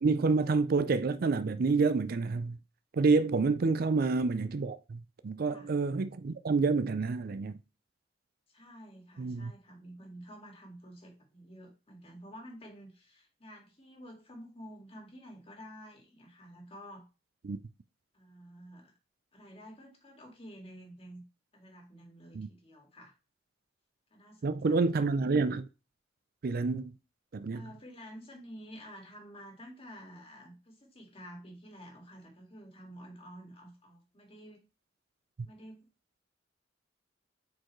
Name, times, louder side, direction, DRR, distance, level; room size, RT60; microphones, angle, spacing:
voice 1, 0.0-2.6 2.9-7.6 9.2-9.5 17.4-17.6 22.3-22.5 24.4-25.7 26.4-26.9 27.3-27.6 35.4-35.5, right 4 dB, 55° right, 0.4 m, -28 dB
voice 2, 8.5-17.0 18.1-18.9 19.3-21.2 21.5-23.1 24.1-24.9 27.5-34.6 35.4-35.9, equal, 30° left, 2.0 m, -50 dB
7.7 x 4.6 x 3.1 m
head